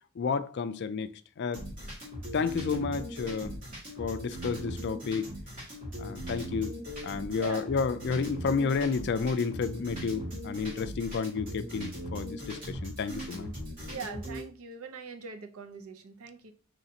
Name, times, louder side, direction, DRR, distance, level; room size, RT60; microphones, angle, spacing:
voice 1, 0.2-1.1 1.4-1.7 2.3-3.5 4.0-5.3 6.0-6.7 7.0-13.5, left 5 dB, 50° left, 0.3 m, -31 dB
sound 1, 1.5-14.4, equal, 40° right, 2.1 m, -39 dB
voice 2, 7.4-7.7 13.9-16.5, right 5 dB, 80° right, 0.6 m, -42 dB
5.1 x 3.2 x 2.8 m
head